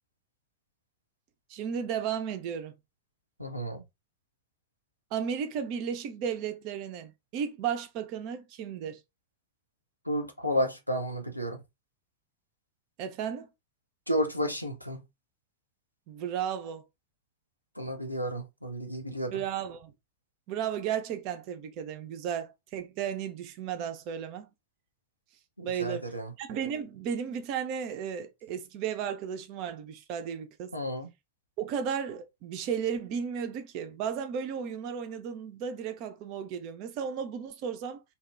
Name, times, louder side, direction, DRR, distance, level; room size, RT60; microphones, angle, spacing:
voice 1, 1.5-2.8 5.1-9.0 13.0-13.5 16.1-16.9 19.3-19.9 20.5-24.5 25.6-26.1 26.4-30.8 31.6-38.0, right 8 dB, 45° right, 0.5 m, -34 dB
voice 2, 3.4-3.8 10.1-11.6 14.1-15.0 17.8-19.4 25.6-26.3 30.7-31.1, equal, 90° left, 0.5 m, -32 dB
2.7 x 2.2 x 2.3 m
figure-of-eight pair, 90°, 0 cm